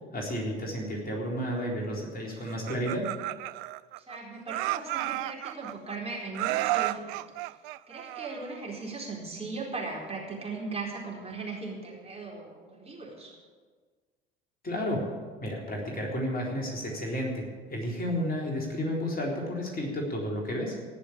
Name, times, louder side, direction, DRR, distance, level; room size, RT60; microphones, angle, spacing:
voice 1, 0.1-3.1 14.6-15.0 15.4-20.8, equal, 30° left, -1 dB, 3.9 m, -32 dB
Laughter, 2.5-4.2 4.5-6.0 6.3-8.6, right 19 dB, 60° right, 0.4 m, -32 dB
voice 2, 4.1-7.4 7.9-13.3, right 3 dB, 20° right, -2 dB, 4.2 m, -38 dB
18.5 x 6.8 x 8.8 m, 1.5 s
figure-of-eight pair, 60°, 30 cm